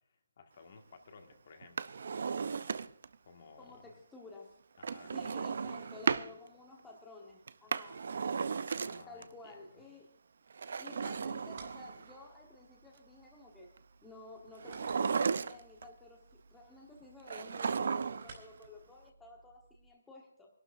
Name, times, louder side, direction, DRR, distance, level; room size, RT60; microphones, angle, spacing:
voice 1, 0.4-1.9 3.2-3.9 4.8-5.9 8.8-9.5, left 4 dB, 40° left, 4 dB, 1.8 m, -56 dB
Drawer open or close, 1.6-3.1 4.8-6.3 7.5-9.2 10.5-12.2 14.6-15.8 17.3-18.4 18.6-18.7, right 5 dB, 55° right, 0.5 m, -35 dB
voice 2, 3.6-4.6 5.1-8.0 9.1-10.1 10.8-13.7 14.0-20.5, left 3 dB, 5° left, -2 dB, 1.2 m, -53 dB
sound 1, 11.0-19.9, right 4 dB, 35° right, 3.6 m, -60 dB
25.0 x 12.0 x 2.6 m, 0.63 s
hypercardioid pair, 170°, 0 cm